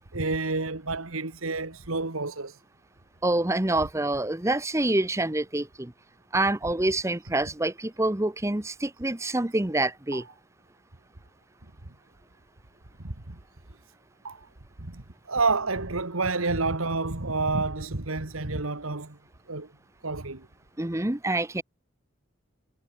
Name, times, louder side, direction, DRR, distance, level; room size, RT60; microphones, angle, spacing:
voice 1, 0.1-2.6 10.1-10.2 13.0-13.4 14.2-14.5 14.9-19.2 19.5-19.7 20.0-20.5, right 3 dB, 90° right, 2.2 m, -29 dB
voice 2, 3.2-5.9 6.3-10.2 20.8-21.6, right 2 dB, 15° right, 0.8 m, -26 dB
head